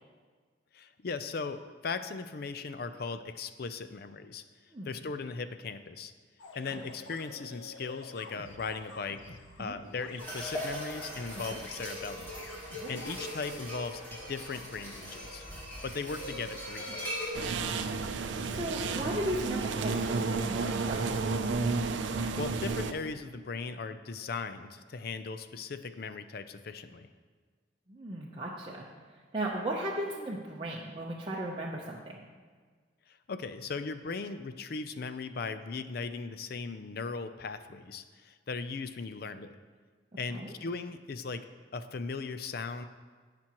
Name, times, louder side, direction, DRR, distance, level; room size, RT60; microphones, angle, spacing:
voice 1, 0.7-4.4 4.8-6.1 6.5-12.3 12.9-15.4 15.8-17.1 22.4-27.1 33.1-39.6 40.2-41.5 41.7-42.8, left 4 dB, 50° left, 10 dB, 0.4 m, -38 dB
sound 1, 6.4-16.7, left 2 dB, 85° left, 0.8 m, -51 dB
sound 2, 10.2-17.3, equal, 10° left, 2.3 m, -40 dB
sound 3, 17.3-22.9, right 4 dB, 75° right, 0.5 m, -31 dB
voice 2, 18.1-21.2 27.9-28.9 29.3-32.2 40.3-40.5, right 1 dB, 25° right, -4 dB, 0.7 m, -36 dB
17.5 x 6.0 x 3.0 m, 1.5 s
head